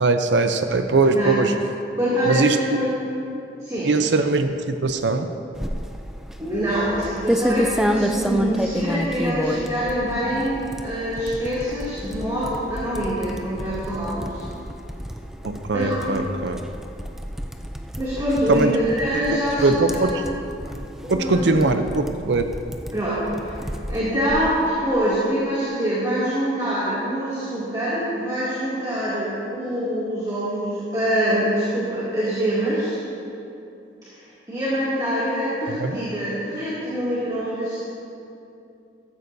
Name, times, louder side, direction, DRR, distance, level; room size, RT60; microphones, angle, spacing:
voice 1, 0.0-1.5 2.3-2.6 3.8-5.3 15.4-16.6 18.5-18.7 19.1-19.2 19.6-20.1 21.1-22.4 35.8-36.0, right 3 dB, 80° right, 7 dB, 0.6 m, -21 dB
voice 2, 2.0-2.9 3.6-3.9 6.4-14.4 15.7-16.0 18.0-20.2 21.0-21.5 22.9-23.6 23.9-33.0 34.1-37.8, equal, 20° right, -10 dB, 2.5 m, -25 dB
sound 1, 5.5-24.7, equal, ahead, 0.4 m, -30 dB
14.5 x 14.0 x 2.7 m, 2.7 s
head